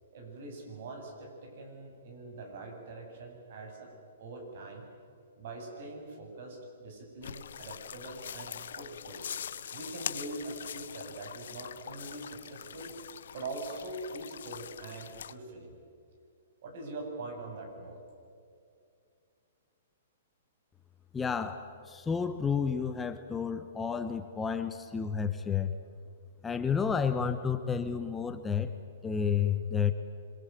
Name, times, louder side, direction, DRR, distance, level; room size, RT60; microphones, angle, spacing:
voice 1, 0.1-3.9 4.2-4.9 5.4-9.2 9.7-13.0 13.3-15.8 16.6-18.0, right 2 dB, 55° right, 4 dB, 7.9 m, -43 dB
sound 1, 7.2-15.3, left 8 dB, 75° left, 1.1 m, -43 dB
voice 2, 21.1-25.8 26.4-28.7 29.0-29.9, left 6 dB, 10° left, 8 dB, 1.0 m, -31 dB
26.5 x 23.0 x 9.2 m, 2.4 s
hypercardioid pair, 150°, 0 cm